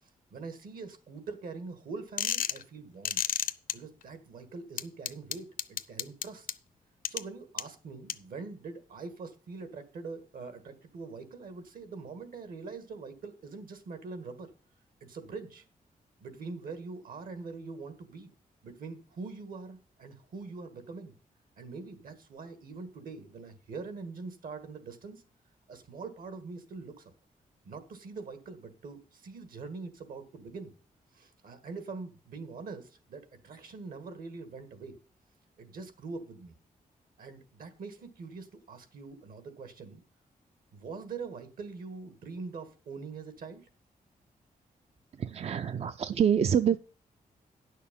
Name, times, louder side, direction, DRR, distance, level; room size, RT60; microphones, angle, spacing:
voice 1, 0.0-3.2 3.7-6.5 7.1-14.5 15.0-15.6 16.2-18.3 18.6-21.1 21.6-25.2 25.7-27.1 27.7-30.7 31.1-35.0 35.6-36.5 37.2-40.0 40.7-43.7, right 4 dB, 75° right, 1.7 m, -43 dB
sound 1, 2.2-2.6 3.0-3.7 4.8-6.5 7.0-7.2 7.6-7.7 8.1-8.2, left 9 dB, 70° left, 0.6 m, -30 dB
voice 2, 45.2-46.8, right 8 dB, 45° right, 0.4 m, -26 dB
10.0 x 6.6 x 5.3 m
wide cardioid pair, 130°, 15 cm